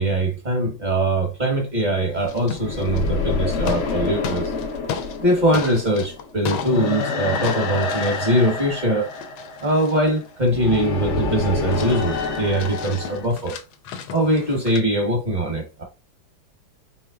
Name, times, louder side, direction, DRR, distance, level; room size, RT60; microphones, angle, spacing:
voice 1, 0.0-4.5 5.2-9.1 9.6-13.6 14.1-15.8, right 1 dB, 30° right, 1.0 m, -22 dB
sound 1, 2.1-13.3, left 4 dB, 65° left, 0.7 m, -27 dB
sound 2, 2.3-3.2 3.5-5.2 5.5-7.1 7.3-10.9 11.3-11.4 11.7-14.8, left 7 dB, 85° left, 1.4 m, -34 dB
5.1 x 3.3 x 2.2 m
omnidirectional pair, 2.1 m